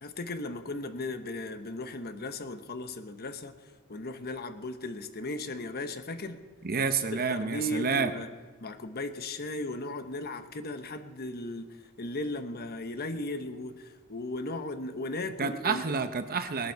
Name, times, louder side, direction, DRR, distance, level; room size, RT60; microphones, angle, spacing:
voice 1, 0.0-3.5 3.9-6.4 7.1-8.3 8.6-16.0, left 2 dB, 45° left, 8 dB, 1.0 m, -36 dB
voice 2, 6.6-8.1 15.4-16.7, right 5 dB, 45° right, 9 dB, 0.8 m, -29 dB
20.0 x 11.5 x 4.6 m, 1.4 s
head